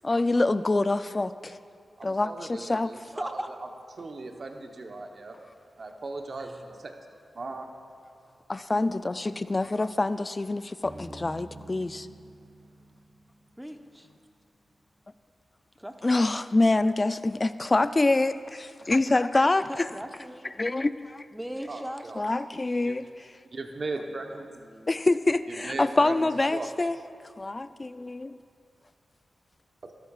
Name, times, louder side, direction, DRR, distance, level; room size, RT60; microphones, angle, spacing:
voice 1, 0.0-1.6 2.0-2.9 8.5-12.1 16.0-19.9 20.6-21.2 22.2-23.3 24.9-27.0 27.4-28.4, left 2 dB, 35° left, 13 dB, 0.4 m, -26 dB
voice 2, 2.0-3.4 4.0-5.3 5.8-6.9 7.3-7.8 21.7-22.2 22.8-23.1 23.5-24.6 25.5-26.7 29.8-29.9, right 3 dB, 60° right, 4 dB, 1.0 m, -38 dB
voice 3, 3.1-3.5 13.6-14.1 15.8-16.2 19.7-20.5 21.3-22.1 24.6-24.9, equal, 5° right, 6 dB, 0.9 m, -38 dB
sound 1, 10.8-14.3, right 2 dB, 30° right, 0.9 m, -48 dB
14.0 x 12.0 x 2.4 m, 2.3 s
cardioid pair, 40°, 0 cm